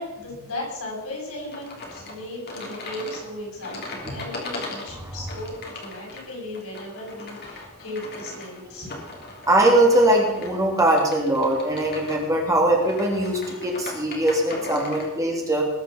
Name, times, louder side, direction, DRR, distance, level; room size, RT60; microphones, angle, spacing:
voice 1, 0.0-8.9, left 1 dB, 85° left, -2 dB, 7.2 m, -36 dB
sound 1, 1.5-15.1, left 2 dB, 50° left, 3.4 m, -39 dB
voice 2, 9.5-15.6, right 1 dB, 15° right, -1 dB, 3.1 m, -21 dB
20.0 x 7.3 x 7.2 m, 0.99 s
head